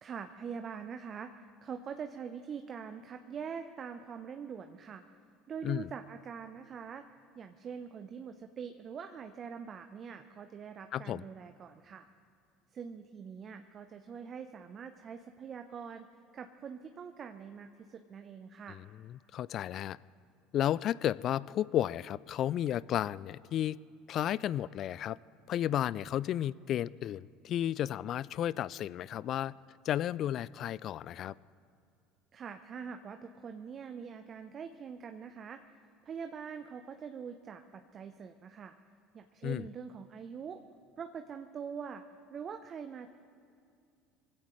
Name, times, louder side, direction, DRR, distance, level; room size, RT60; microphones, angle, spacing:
voice 1, 0.0-5.0 5.5-7.1 7.4-12.1 12.7-16.1 16.3-18.8 32.3-35.6 36.0-38.8 39.1-40.6 41.0-42.0 42.3-43.1, right 6 dB, 40° right, 7 dB, 0.7 m, -44 dB
voice 2, 10.9-11.2 18.7-20.0 20.5-23.8 24.1-25.2 25.5-29.5 29.9-31.3 39.4-39.7, left 11 dB, 50° left, 21 dB, 0.3 m, -33 dB
24.0 x 16.0 x 3.2 m, 2.3 s
hypercardioid pair, 70°, 0 cm